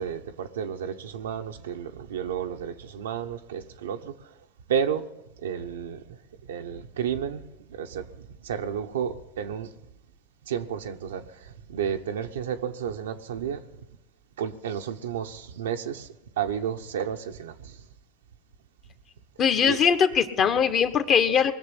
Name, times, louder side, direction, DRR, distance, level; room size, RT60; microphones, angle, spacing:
voice 1, 0.0-4.1 4.7-5.0 5.4-6.0 6.5-7.4 7.7-8.0 8.4-9.7 10.5-11.2 11.7-13.6 14.4-16.1 16.4-17.7 19.6-19.8, right 8 dB, 90° right, 6 dB, 0.9 m, -31 dB
voice 2, 19.4-21.5, left 7 dB, 45° left, 8 dB, 1.4 m, -21 dB
20.5 x 6.8 x 9.8 m, 0.93 s
hypercardioid pair, 100°, 0 cm